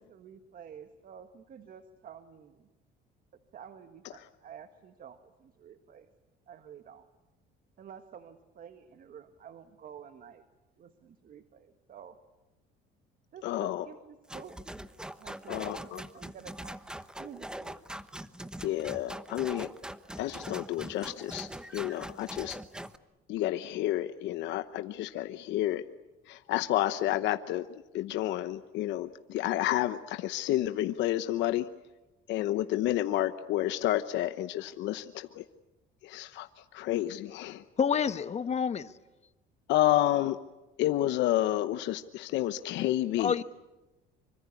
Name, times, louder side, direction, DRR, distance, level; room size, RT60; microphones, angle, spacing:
voice 1, 0.0-2.7 3.5-6.1 6.5-7.1 7.8-10.4 10.8-12.2 13.3-14.6 15.2-17.8, right 8 dB, 50° right, 8 dB, 1.7 m, -50 dB
voice 2, 13.4-13.8 15.5-16.0 18.6-19.7 20.2-22.6 23.3-25.8 26.3-31.7 32.3-35.4 36.0-37.6 39.7-40.4 40.8-43.4, left 14 dB, 75° left, 10 dB, 0.9 m, -30 dB
sound 1, 14.3-23.0, right 1 dB, 5° right, 1.0 m, -42 dB
voice 3, 37.8-38.9 43.2-43.4, left 7 dB, 35° left, 12 dB, 1.1 m, -28 dB
25.5 x 24.5 x 8.4 m, 1.1 s
cardioid pair, 115°, 19 cm